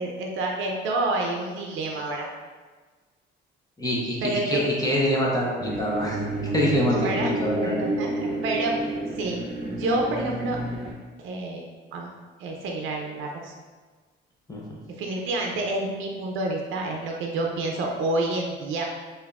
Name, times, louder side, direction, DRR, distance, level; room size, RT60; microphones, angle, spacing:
voice 1, 0.0-2.3 4.2-4.6 6.9-8.8 9.2-10.6 11.2-11.6 11.9-12.1 12.4-13.5 15.0-18.8, right 2 dB, 85° right, 1 dB, 0.6 m, -28 dB
voice 2, 3.8-6.2 6.5-7.8 14.5-14.8, equal, 20° left, -3 dB, 0.9 m, -25 dB
sound 1, 5.6-10.9, right 2 dB, 5° right, 1.3 m, -30 dB
5.1 x 2.6 x 2.5 m, 1.4 s
cardioid pair, 90°, 20 cm